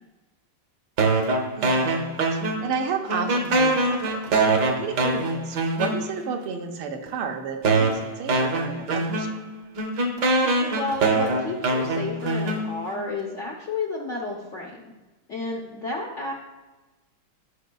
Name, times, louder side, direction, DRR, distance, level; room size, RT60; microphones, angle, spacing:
sound 1, 1.0-2.8 3.1-6.3 7.1-7.2 7.6-13.0, right 2 dB, 60° right, 1.3 m, -24 dB
voice 1, 1.5-2.0 2.3-9.5, right 6 dB, 80° right, 4 dB, 1.7 m, -32 dB
voice 2, 10.6-15.0 15.3-16.3, left 3 dB, 55° left, -1 dB, 0.8 m, -31 dB
13.0 x 5.3 x 2.3 m, 1.2 s
omnidirectional pair, 2.3 m